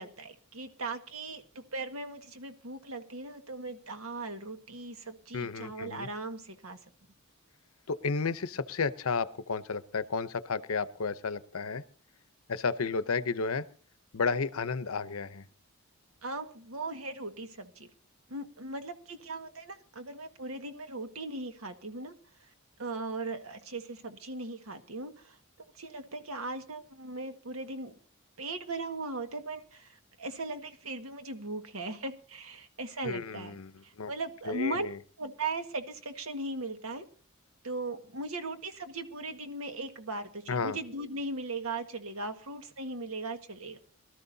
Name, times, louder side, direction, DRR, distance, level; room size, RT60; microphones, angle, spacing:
voice 1, 0.0-6.8 16.2-17.9 18.3-22.1 22.8-25.4 25.7-27.9 28.4-34.9 35.2-37.0 37.6-43.8, right 2 dB, 85° right, 1.6 m, -38 dB
voice 2, 5.3-6.1 7.9-11.8 12.5-13.6 14.1-15.4 33.0-33.7 34.0-34.1 34.5-35.0 40.5-40.8, left 4 dB, 85° left, 0.8 m, -32 dB
23.5 x 13.0 x 2.7 m
head